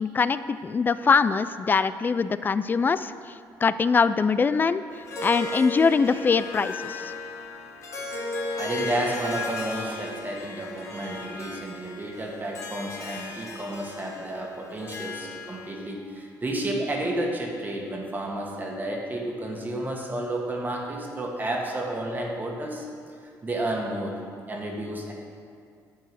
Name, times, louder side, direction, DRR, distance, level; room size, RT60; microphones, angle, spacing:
voice 1, 0.0-3.3 3.6-4.8 5.2-7.1, left 5 dB, 30° left, 14 dB, 0.3 m, -23 dB
Harp, 4.9-15.8, left 2 dB, 45° left, 1.5 m, -35 dB
voice 2, 8.5-22.8 23.4-24.2 24.5-25.2, right 1 dB, 25° right, -1 dB, 1.5 m, -31 dB
9.2 x 4.6 x 7.5 m, 2.2 s
cardioid pair, 95°, 7 cm